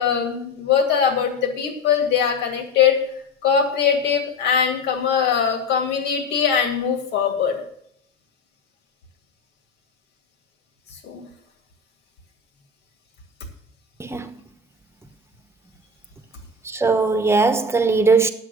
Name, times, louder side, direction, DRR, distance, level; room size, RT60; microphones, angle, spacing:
voice 1, 0.0-3.0 3.4-7.6 11.0-11.2, left 7 dB, 80° left, 2.4 m, -21 dB
voice 2, 16.6-18.3, right 4 dB, 15° right, 1.1 m, -19 dB
9.8 x 7.7 x 6.5 m
cardioid pair, 110°, 17 cm